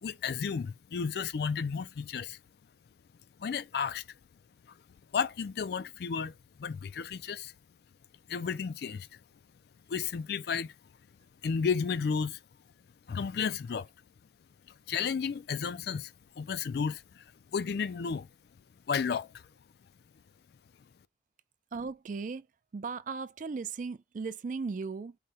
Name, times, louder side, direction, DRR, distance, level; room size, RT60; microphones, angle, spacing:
voice 1, 0.0-2.4 3.4-4.0 5.1-7.5 8.3-9.1 9.9-10.7 11.4-12.4 13.1-13.9 14.9-17.2 17.5-18.3 18.9-19.4, left 6 dB, 60° left, 0.4 m, -33 dB
voice 2, 21.7-22.5 22.7-25.2, right 4 dB, 45° right, 0.4 m, -37 dB
4.9 x 2.1 x 4.1 m
head